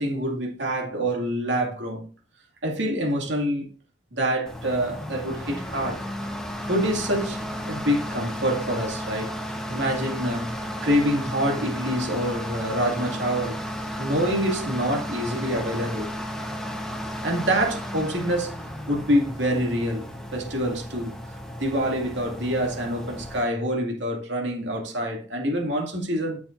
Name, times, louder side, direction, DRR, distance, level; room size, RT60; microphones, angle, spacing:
voice 1, 0.0-2.1 2.6-3.7 4.1-6.0 6.7-9.4 9.7-10.5 10.8-13.6 14.0-16.1 17.2-18.6 18.9-21.2 21.6-26.4, equal, 75° right, 2.2 m, -26 dB
sound 1, 4.5-23.4, equal, 5° left, 1.1 m, -34 dB
9.9 x 7.0 x 2.6 m
head